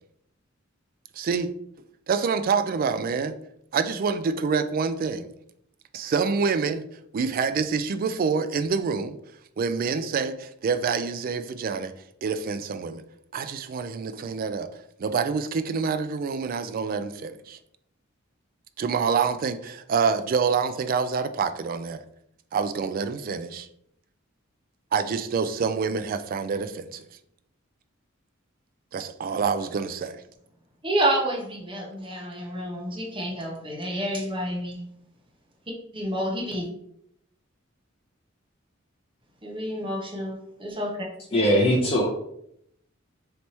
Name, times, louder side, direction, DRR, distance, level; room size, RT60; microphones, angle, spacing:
voice 1, 1.2-1.5 2.1-3.4 3.7-5.3 5.9-6.8 7.1-9.2 9.6-11.9 12.2-13.0 13.3-14.7 15.0-17.6 18.8-22.0 22.5-23.7 24.9-27.0 28.9-30.2, right 5 dB, 45° right, 0.3 m, -26 dB
voice 2, 30.8-34.8 35.9-36.6 39.4-41.1, right 1 dB, 25° right, 0.9 m, -29 dB
voice 3, 41.3-42.2, equal, 30° left, 0.6 m, -21 dB
3.3 x 2.9 x 4.1 m
head